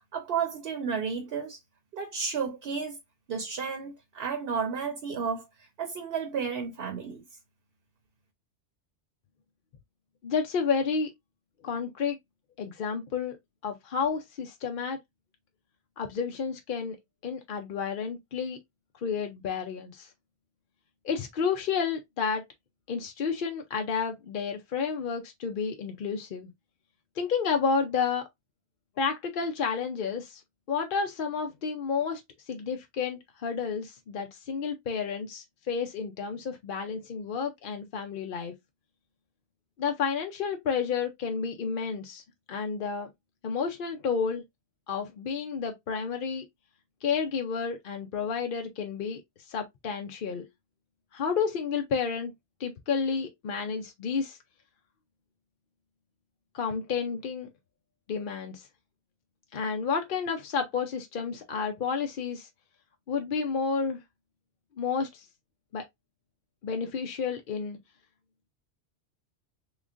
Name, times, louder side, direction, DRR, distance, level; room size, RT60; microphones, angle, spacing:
voice 1, 0.1-1.6 1.9-3.0 3.3-5.5 5.8-7.2, right 6 dB, 60° right, 0.9 m, -32 dB
voice 2, 10.2-11.1 11.6-12.2 12.6-13.4 13.6-15.0 16.0-18.6 19.0-20.1 21.0-22.4 22.9-26.5 27.2-28.2 29.0-30.4 30.7-32.2 32.5-38.5 39.8-42.2 42.5-43.1 43.4-44.4 44.9-46.5 47.0-49.2 49.5-50.5 51.1-52.3 52.6-54.4 56.5-57.5 58.1-58.7 59.5-62.5 63.1-64.0 64.8-65.3 65.7-65.8 66.6-67.8, left 5 dB, 55° left, 0.7 m, -31 dB
3.6 x 3.1 x 2.4 m
omnidirectional pair, 1.2 m